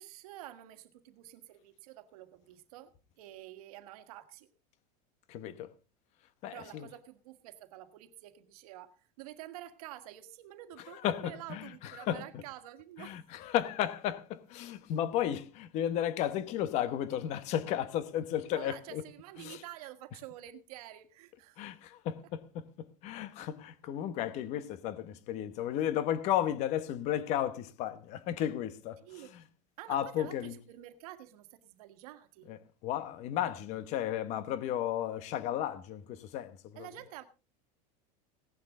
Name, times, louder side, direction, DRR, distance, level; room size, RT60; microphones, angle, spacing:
voice 1, 0.0-4.5 6.5-13.2 18.5-21.6 29.0-29.4 29.8-32.5 36.7-37.3, right 13 dB, 70° right, 1.6 m, -49 dB
voice 2, 5.3-5.7 6.4-6.9 11.0-11.6 12.1-12.2 13.0-19.0 19.4-19.6 21.6-29.0 29.9-30.5 32.5-32.6 32.8-36.6, left 11 dB, 35° left, 1.0 m, -33 dB
17.0 x 11.0 x 3.6 m
supercardioid pair, 175°, 19 cm